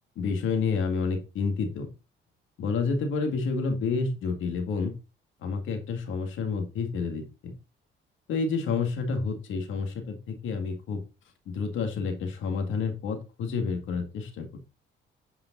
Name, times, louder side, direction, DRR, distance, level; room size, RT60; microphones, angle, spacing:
voice 1, 0.2-1.9 2.6-4.9 5.4-7.5 8.3-11.0 11.5-14.5, left 4 dB, 80° left, 5 dB, 2.1 m, -29 dB
9.1 x 5.1 x 3.9 m, 0.30 s
cardioid pair, 90°, 20 cm